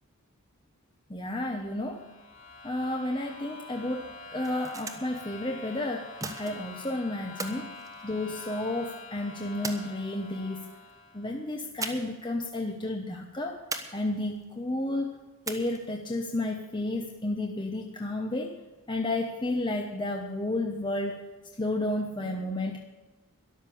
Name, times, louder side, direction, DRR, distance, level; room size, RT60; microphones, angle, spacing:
voice 1, 1.1-2.1 2.6-6.1 6.4-7.7 8.0-10.7 11.1-13.6 13.9-15.1 15.5-18.6 18.9-21.2 21.6-22.8, left 1 dB, 20° left, 2 dB, 0.9 m, -32 dB
sound 1, 1.7-11.4, left 3 dB, 55° left, 4.2 m, -46 dB
sound 2, 4.3-5.2 6.2-6.8 7.4-8.6 9.6-10.4 11.8-12.3 12.5-12.6 13.7-14.4 15.4-16.0, right 3 dB, 15° right, 1.1 m, -39 dB
13.0 x 11.5 x 7.0 m, 1.2 s
head